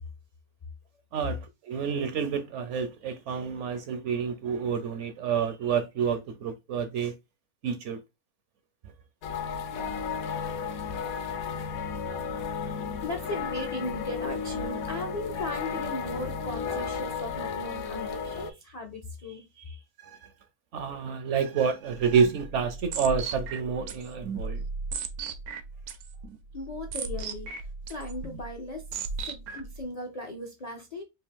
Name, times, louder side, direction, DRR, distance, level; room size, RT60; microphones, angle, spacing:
voice 1, 1.1-7.1 7.6-8.0 20.0-20.3 20.7-24.6, right 6 dB, 65° right, 0.7 m, -29 dB
sound 1, 9.2-18.5, left 6 dB, 75° left, 1.0 m, -33 dB
voice 2, 12.9-19.8 26.5-28.8 29.2-31.0, left 1 dB, 55° left, 0.4 m, -37 dB
sound 2, 21.9-29.8, right 4 dB, 85° right, 1.1 m, -37 dB
3.4 x 2.7 x 3.4 m
omnidirectional pair, 1.5 m